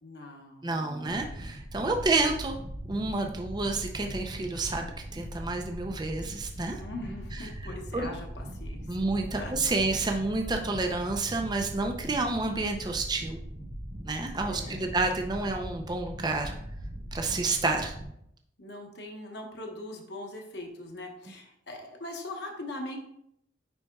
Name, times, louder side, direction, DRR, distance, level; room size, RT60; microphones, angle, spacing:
voice 1, 0.0-1.2 1.8-2.0 6.8-9.0 9.3-9.5 14.5-15.0 17.3-17.5 18.6-23.0, left 1 dB, 60° left, 2 dB, 1.1 m, -41 dB
voice 2, 0.6-2.5 2.9-6.8 7.9-8.1 8.9-13.4 14.0-16.6 17.1-17.9, right 3 dB, 20° right, 4 dB, 0.4 m, -29 dB
sound 1, 1.1-18.0, equal, 65° right, 1.3 m, -40 dB
9.8 x 4.2 x 2.3 m, 0.74 s
head